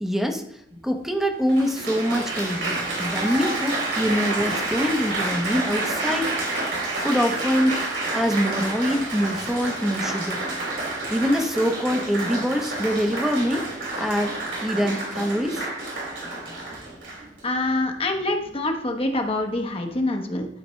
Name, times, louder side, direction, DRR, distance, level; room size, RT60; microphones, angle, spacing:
voice 1, 0.0-0.4 0.8-6.3 7.0-7.9 8.1-10.4 11.1-13.7 14.0-14.3 14.6-15.7, equal, ahead, 4 dB, 0.7 m, -24 dB
Applause, 0.7-0.8 1.5-17.4 18.1-18.5, right 2 dB, 85° right, 3.0 m, -29 dB
voice 2, 17.4-20.5, left 2 dB, 30° left, 4 dB, 0.9 m, -25 dB
11.5 x 4.3 x 3.1 m, 0.75 s
head